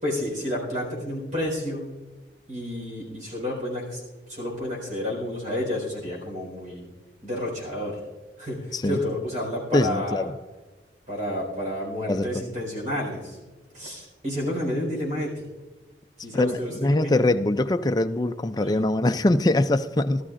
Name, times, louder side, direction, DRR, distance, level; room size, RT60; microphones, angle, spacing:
voice 1, 0.0-1.9 2.5-4.0 4.3-6.9 7.2-8.0 8.4-10.3 11.1-13.4 13.7-15.4 16.2-17.2 18.6-18.9, left 1 dB, 45° right, 4.4 m, -30 dB
voice 2, 9.7-10.3 12.1-12.3 16.3-20.2, left 2 dB, 20° left, 0.4 m, -23 dB
17.5 x 13.0 x 2.5 m
head